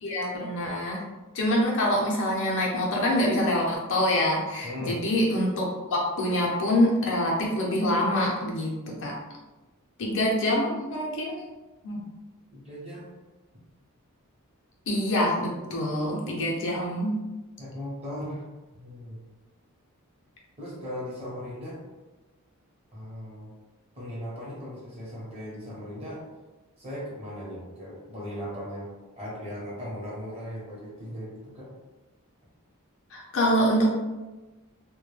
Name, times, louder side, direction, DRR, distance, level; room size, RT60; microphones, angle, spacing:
voice 1, 0.0-1.0 1.3-9.1 10.0-11.4 11.8-12.0 14.9-17.2 33.1-34.0, left 1 dB, 60° left, -3 dB, 0.6 m, -25 dB
voice 2, 4.6-5.0 12.5-13.1 17.6-18.4 18.7-19.2 20.6-21.8 22.9-23.5 23.9-26.2 26.8-28.9 29.2-31.7, equal, 30° right, -6 dB, 0.8 m, -38 dB
2.2 x 2.1 x 3.1 m, 1.1 s
head